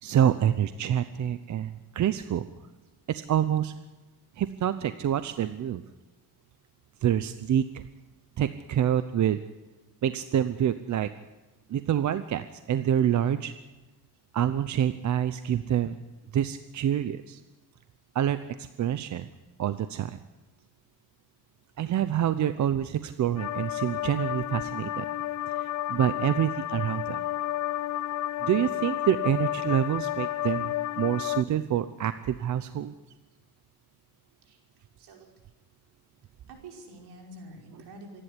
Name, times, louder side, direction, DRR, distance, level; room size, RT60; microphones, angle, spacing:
voice 1, 0.0-2.5 3.1-3.7 4.4-5.8 7.0-7.9 8.4-9.4 10.0-11.1 11.7-13.5 14.3-16.0 16.3-17.4 18.1-19.3 19.6-20.2 21.8-25.1 25.5-27.2 28.4-32.9, right 10 dB, 45° right, 12 dB, 0.8 m, -27 dB
sound 1, 23.4-31.4, left 13 dB, 45° left, 0.7 m, -31 dB
voice 2, 35.0-35.3 36.5-38.2, right 2 dB, 65° right, 1 dB, 5.5 m, -47 dB
26.0 x 11.5 x 9.9 m, 1.1 s
cardioid pair, 115°, 41 cm